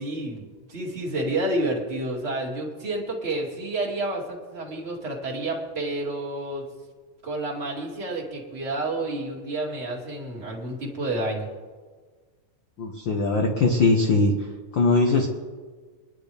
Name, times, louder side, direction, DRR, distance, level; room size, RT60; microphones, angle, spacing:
voice 1, 0.0-6.7 7.2-11.5, right 2 dB, 20° right, -2 dB, 2.0 m, -30 dB
voice 2, 12.8-14.3 14.7-15.3, left 3 dB, 90° left, 1 dB, 1.0 m, -20 dB
25.0 x 11.0 x 3.4 m, 1.5 s
omnidirectional pair, 4.0 m